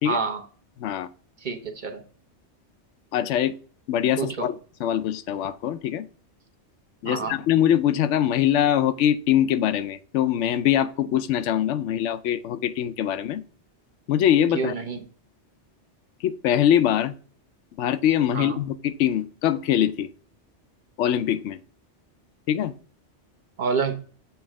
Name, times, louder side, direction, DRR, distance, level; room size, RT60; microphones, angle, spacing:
voice 1, 0.0-0.4 1.4-2.0 4.2-4.5 7.0-7.4 14.5-15.0 18.3-18.6 23.6-23.9, right 5 dB, 45° right, 0.9 m, -28 dB
voice 2, 3.1-3.6 3.9-4.5 4.8-6.1 7.0-13.4 14.1-14.7 16.2-17.1 17.8-20.1 21.0-21.6 22.5-22.7, left 10 dB, 85° left, 0.9 m, -23 dB
7.1 x 3.1 x 4.7 m
omnidirectional pair, 1.2 m